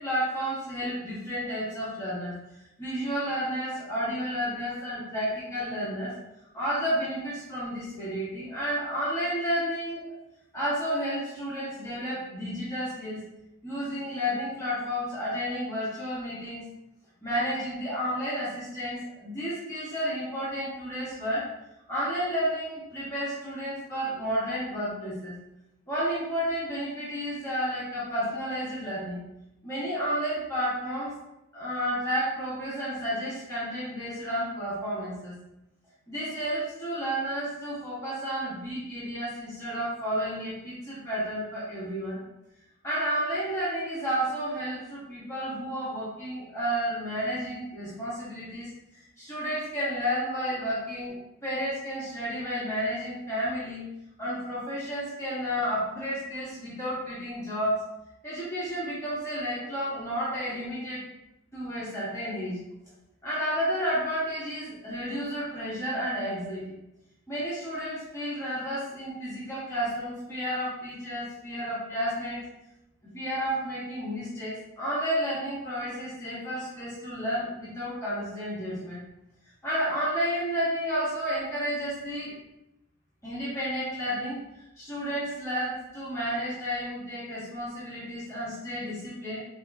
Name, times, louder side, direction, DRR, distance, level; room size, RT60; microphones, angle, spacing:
voice 1, 0.0-2.3 2.8-6.1 6.5-10.1 10.5-13.2 13.6-16.6 17.2-21.5 21.9-25.3 25.9-29.2 29.6-31.1 31.5-35.3 36.1-42.2 42.8-51.2 51.4-53.8 54.2-57.8 58.2-61.1 61.5-62.6 63.2-66.6 67.3-72.4 73.0-79.0 79.6-82.4 83.2-84.4 84.8-89.4, equal, 15° left, -10 dB, 1.0 m, -31 dB
3.9 x 2.9 x 2.3 m, 0.88 s
head